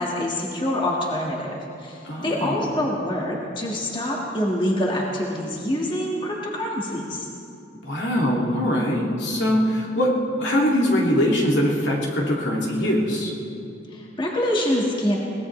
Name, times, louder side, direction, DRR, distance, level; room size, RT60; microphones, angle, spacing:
voice 1, 0.0-7.3 13.9-15.2, left 1 dB, 25° left, -2 dB, 1.8 m, -25 dB
voice 2, 2.0-2.6 7.8-13.3, equal, 75° left, -2 dB, 2.5 m, -22 dB
22.5 x 18.5 x 3.3 m, 2.6 s
head